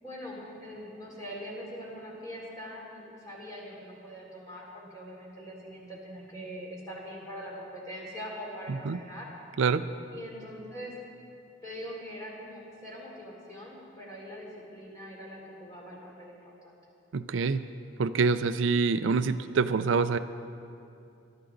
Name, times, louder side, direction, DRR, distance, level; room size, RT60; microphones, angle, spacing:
voice 1, 0.0-9.3 10.1-10.9 11.6-16.4 16.6-16.8, equal, 20° left, -4 dB, 3.4 m, -42 dB
voice 2, 17.1-17.6 18.0-20.2, right 5 dB, 75° right, 12 dB, 0.4 m, -26 dB
20.0 x 12.5 x 3.8 m, 2.6 s
head